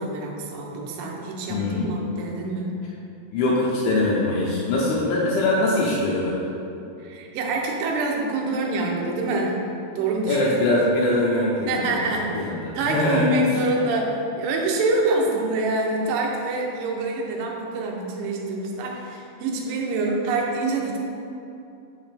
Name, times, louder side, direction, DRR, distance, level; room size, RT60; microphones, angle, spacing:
voice 1, 0.0-2.8 7.0-9.7 10.0-10.4 11.7-12.4 12.8-21.0, right 2 dB, 75° right, 0 dB, 2.3 m, -26 dB
voice 2, 1.5-1.8 3.3-6.3 10.3-12.0 12.3-13.3, left 2 dB, 80° left, -6 dB, 2.5 m, -22 dB
6.0 x 5.9 x 3.4 m, 2.7 s
omnidirectional pair, 4.4 m